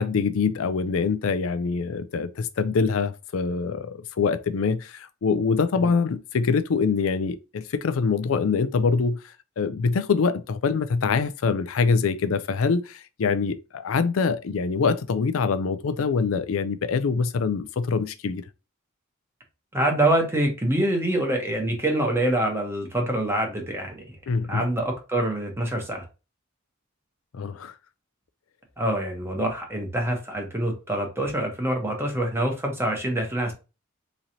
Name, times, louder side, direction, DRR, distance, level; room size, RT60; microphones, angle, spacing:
voice 1, 0.0-9.2 9.6-18.4 24.3-24.6 27.3-27.7, left 5 dB, 80° left, 0.4 m, -24 dB
voice 2, 19.7-24.2 24.5-26.1 28.8-33.5, right 1 dB, 10° right, 1.0 m, -25 dB
3.9 x 3.1 x 2.8 m
head